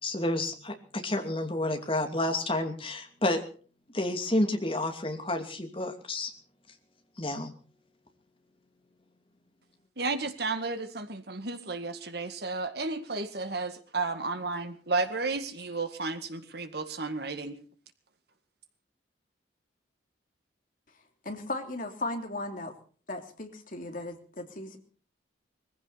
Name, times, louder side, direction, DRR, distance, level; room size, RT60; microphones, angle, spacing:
voice 1, 0.0-3.4 3.9-6.3 7.2-7.5, left 1 dB, 30° left, 5 dB, 2.7 m, -30 dB
voice 2, 10.0-17.6, right 3 dB, 55° right, 8 dB, 2.0 m, -33 dB
voice 3, 21.2-22.7 23.1-24.8, left 2 dB, 45° left, 4 dB, 3.1 m, -36 dB
22.0 x 15.5 x 4.2 m, 0.42 s
head